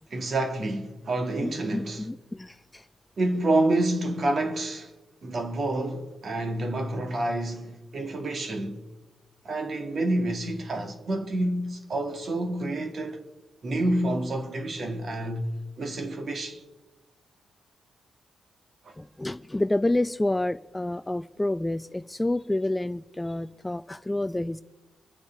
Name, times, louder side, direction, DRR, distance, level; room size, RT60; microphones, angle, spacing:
voice 1, 0.1-2.1 3.2-4.9 5.2-8.8 9.4-13.2 13.6-15.5 15.8-16.6 18.8-18.9, right 1 dB, 50° right, 2.1 m, -28 dB
voice 2, 1.4-2.9 19.0-24.6, left 1 dB, 10° left, 0.4 m, -29 dB
25.0 x 8.4 x 4.6 m
cardioid pair, 105°, 0 cm